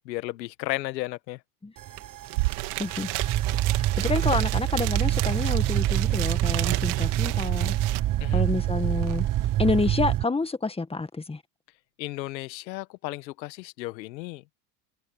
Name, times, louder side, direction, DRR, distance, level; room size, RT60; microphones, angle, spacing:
voice 1, 0.0-1.4 8.2-8.4 12.0-14.4, left 18 dB, 90° left, 1.4 m, -34 dB
sound 1, 1.8-10.2, right 13 dB, 40° right, 1.3 m, -26 dB
sound 2, 2.0-8.0, right 24 dB, 70° right, 3.1 m, -33 dB
voice 2, 4.0-7.7 8.3-9.3 9.6-11.4, left 3 dB, 10° left, 1.9 m, -28 dB
supercardioid pair, 100°, 50 cm